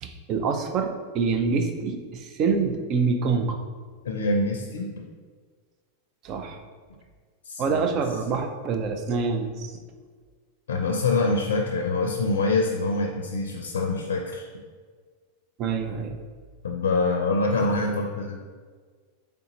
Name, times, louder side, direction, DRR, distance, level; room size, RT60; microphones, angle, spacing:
voice 1, 0.0-3.6 6.2-6.6 7.6-9.7 15.6-16.2, right 5 dB, 45° right, 6 dB, 0.5 m, -26 dB
voice 2, 4.0-5.1 7.5-7.8 10.7-14.5 16.6-18.4, left 3 dB, 85° left, 2 dB, 0.4 m, -25 dB
3.8 x 3.5 x 2.9 m, 1.6 s
hypercardioid pair, 105°, 0 cm